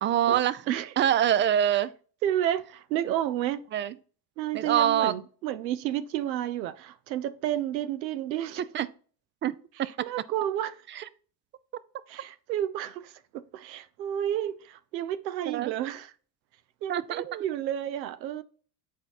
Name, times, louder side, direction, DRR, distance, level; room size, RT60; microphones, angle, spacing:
voice 1, 0.0-0.6 1.0-1.9 3.7-3.9 4.5-5.1 8.7-8.9 9.4-9.9 10.9-11.0 15.5-15.7 16.9-17.2, right 10 dB, 25° right, 0.3 m, -25 dB
voice 2, 2.2-3.6 4.4-8.6 9.8-10.8 12.1-16.1 16.8-18.4, right 11 dB, 90° right, 0.6 m, -31 dB
8.5 x 4.3 x 4.1 m
hypercardioid pair, 75°, 50 cm